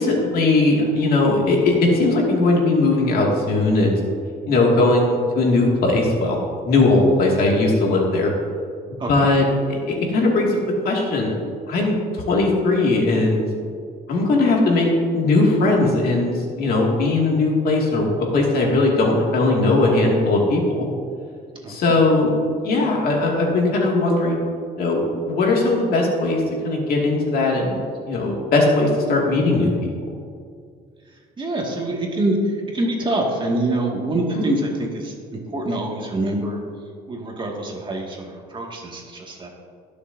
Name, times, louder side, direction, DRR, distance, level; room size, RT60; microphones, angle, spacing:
voice 1, 0.0-4.0 4.5-6.4 6.6-8.3 9.1-10.6 10.8-11.3 11.7-12.0 12.3-13.5 14.1-20.9 21.7-24.4 24.8-29.9 34.3-34.4, left 2 dB, 65° left, -2 dB, 2.3 m, -19 dB
voice 2, 21.6-22.0 31.4-35.1 35.5-36.6 37.1-39.5, right 1 dB, 30° right, -1 dB, 2.0 m, -25 dB
20.5 x 6.8 x 2.7 m, 2.2 s
cardioid pair, 110°, 17 cm